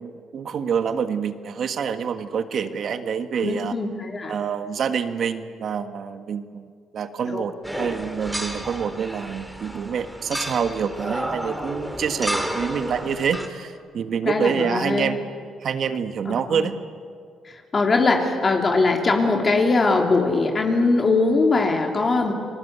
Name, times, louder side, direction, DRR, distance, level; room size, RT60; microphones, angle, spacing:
voice 1, 0.0-3.7 4.3-6.7 6.9-15.2 15.6-16.7, right 7 dB, 60° right, 9 dB, 1.6 m, -26 dB
voice 2, 3.4-4.3 7.2-7.4 14.2-15.2 16.2-16.7 17.4-22.3, left 3 dB, 35° left, 2 dB, 3.0 m, -21 dB
sound 1, 7.6-13.5, equal, 5° right, 3.0 m, -31 dB
30.0 x 20.5 x 8.3 m, 2.2 s
cardioid pair, 90°, 0 cm